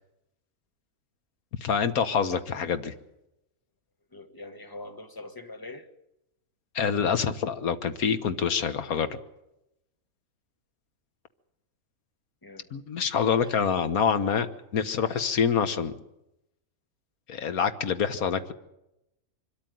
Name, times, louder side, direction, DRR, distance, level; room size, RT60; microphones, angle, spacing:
voice 1, 1.6-2.9 6.7-9.2 12.7-14.5 14.7-15.9 17.3-18.5, left 7 dB, 75° left, 1.7 m, -26 dB
voice 2, 4.1-5.9 8.9-9.0 12.4-12.7 13.2-13.8, left 2 dB, 15° left, 1.4 m, -44 dB
24.0 x 13.5 x 9.3 m
omnidirectional pair, 1.5 m